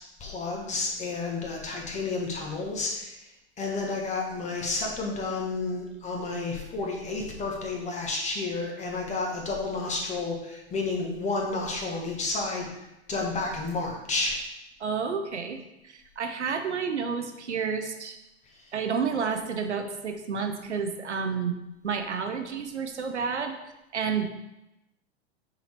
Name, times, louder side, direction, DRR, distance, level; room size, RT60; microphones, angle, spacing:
voice 1, 0.2-3.2 3.6-12.7 13.1-14.4 18.5-18.6, left 3 dB, 20° left, 0 dB, 1.3 m, -31 dB
voice 2, 14.8-18.2 18.7-21.6 21.8-23.5 23.9-24.3, right 6 dB, 80° right, 6 dB, 0.7 m, -30 dB
5.8 x 3.9 x 4.4 m, 0.92 s
figure-of-eight pair, 95°, 34 cm